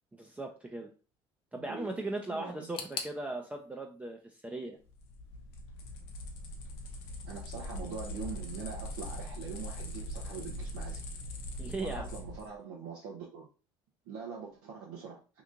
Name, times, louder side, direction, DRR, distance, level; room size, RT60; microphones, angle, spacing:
voice 1, 0.1-0.9 1.5-4.8 11.6-12.1, right 2 dB, 10° right, 2 dB, 0.5 m, -38 dB
voice 2, 1.5-2.0 2.3-2.7 7.3-11.0 11.8-13.5 14.1-15.2, right 6 dB, 80° right, -4 dB, 0.8 m, -43 dB
sound 1, 2.7-5.6 5.9-6.7 7.0-7.1 7.9-8.0, left 5 dB, 50° left, 0.7 m, -45 dB
sound 2, 4.9-12.5, equal, 85° left, 0.7 m, -41 dB
3.0 x 2.5 x 3.6 m, 0.34 s
supercardioid pair, 85°, 11 cm